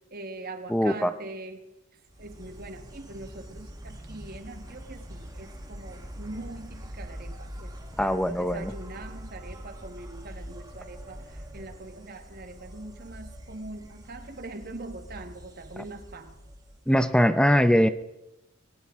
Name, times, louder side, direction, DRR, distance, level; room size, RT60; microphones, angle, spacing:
voice 1, 0.1-1.6 2.2-7.7 8.0-16.4, right 2 dB, 45° right, 7 dB, 1.5 m, -42 dB
voice 2, 0.7-1.1 8.0-8.7 16.9-17.9, equal, 5° left, 12 dB, 0.6 m, -21 dB
Insect, 2.1-17.2, equal, 15° right, 1.5 m, -44 dB
20.0 x 18.5 x 3.6 m, 0.91 s
head